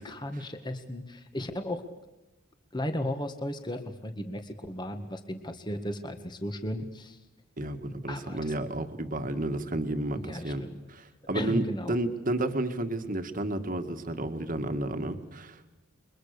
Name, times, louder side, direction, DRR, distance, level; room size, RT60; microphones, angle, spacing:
voice 1, 0.0-1.8 2.7-7.2 8.1-8.5 10.1-10.8 11.3-12.0, left 1 dB, 20° left, 7 dB, 1.9 m, -35 dB
voice 2, 7.6-10.6 10.9-15.7, right 1 dB, 40° right, 8 dB, 2.0 m, -31 dB
29.5 x 23.5 x 6.8 m, 1.0 s
head